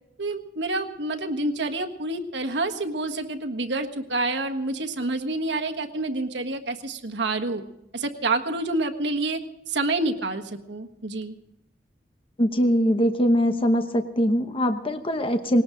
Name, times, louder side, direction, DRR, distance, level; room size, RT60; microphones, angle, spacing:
voice 1, 0.2-7.6 7.9-9.4 9.7-11.4, right 2 dB, 75° right, 5 dB, 1.5 m, -28 dB
voice 2, 12.4-15.6, equal, 30° left, 7 dB, 0.9 m, -22 dB
19.5 x 18.5 x 3.9 m, 0.86 s
head